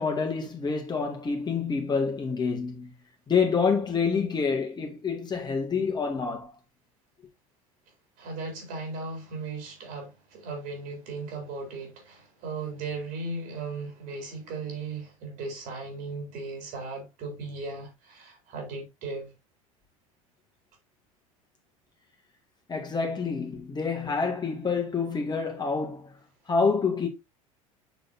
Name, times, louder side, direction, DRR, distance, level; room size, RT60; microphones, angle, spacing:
voice 1, 0.0-2.9 3.3-6.5 22.7-26.1 26.5-27.1, left 5 dB, 25° left, 2.2 m, -27 dB
voice 2, 8.2-19.3, right 3 dB, 55° right, 3.8 m, -37 dB
8.0 x 6.2 x 2.7 m
figure-of-eight pair, 70°, 18 cm